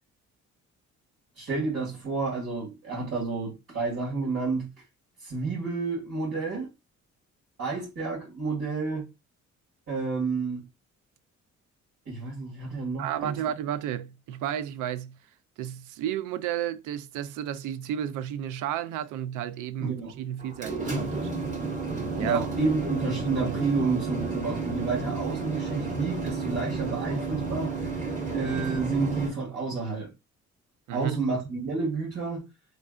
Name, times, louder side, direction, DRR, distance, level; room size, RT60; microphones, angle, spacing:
voice 1, 1.4-4.7 5.2-6.7 7.6-9.1 9.9-10.7 12.1-13.4 19.8-20.1 22.2-27.8 28.3-30.1 30.9-32.4, right 4 dB, 60° right, 1.8 m, -30 dB
voice 2, 13.0-15.2 15.6-21.3 22.2-22.5 30.9-31.2, right 10 dB, 85° right, 0.5 m, -32 dB
sound 1, 20.4-29.3, right 4 dB, 25° right, 1.4 m, -32 dB
3.8 x 3.2 x 2.3 m
cardioid pair, 90°, 30 cm